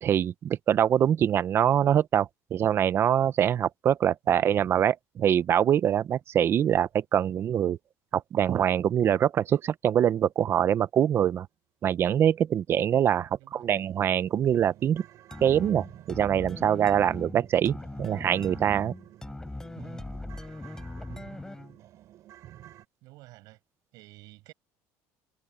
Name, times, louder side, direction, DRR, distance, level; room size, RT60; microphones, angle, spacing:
voice 1, 0.0-7.8 8.1-11.5 11.8-15.0 15.4-18.9, right 9 dB, 40° right, 0.7 m, -24 dB
sound 1, 12.9-13.0 13.4-13.5 13.8-22.9, right 13 dB, 55° right, 4.5 m, -51 dB
voice 2, 13.4-13.7 23.0-23.6 23.9-24.5, right 20 dB, 70° right, 7.2 m, -51 dB
Wicked Guitar, 15.3-21.8, left 2 dB, 10° left, 7.8 m, -40 dB
cardioid pair, 135°, 7 cm